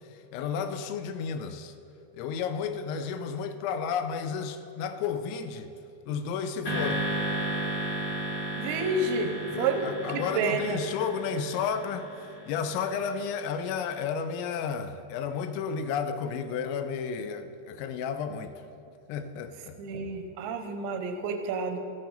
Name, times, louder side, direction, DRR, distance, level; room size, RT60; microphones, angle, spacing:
voice 1, 0.3-1.7 2.1-5.7 6.1-7.1 9.5-12.1 12.5-18.5 19.1-19.8, left 6 dB, 85° left, 2.8 m, -32 dB
sound 1, 6.6-13.0, right 1 dB, 40° left, 2.7 m, -34 dB
voice 2, 8.6-9.9 10.1-10.8 19.8-21.8, right 4 dB, 85° right, 2.7 m, -30 dB
14.0 x 9.2 x 3.9 m
omnidirectional pair, 5.5 m